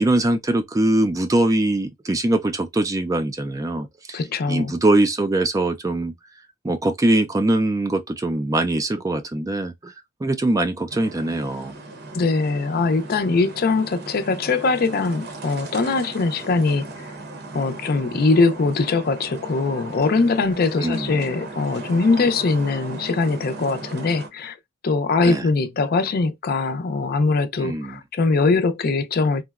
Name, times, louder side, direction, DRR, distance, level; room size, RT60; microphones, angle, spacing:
voice 1, 0.0-4.2 4.5-6.1 6.6-9.9 10.2-11.7 20.8-21.3 25.2-25.5 27.6-28.0, right 1 dB, 15° right, 0.3 m, -22 dB
voice 2, 4.1-4.7 12.1-16.9 17.5-24.6 24.8-29.4, left 3 dB, 50° left, 0.4 m, -21 dB
sound 1, 10.9-24.3, right 2 dB, 55° right, 0.8 m, -37 dB
3.7 x 2.1 x 2.3 m
head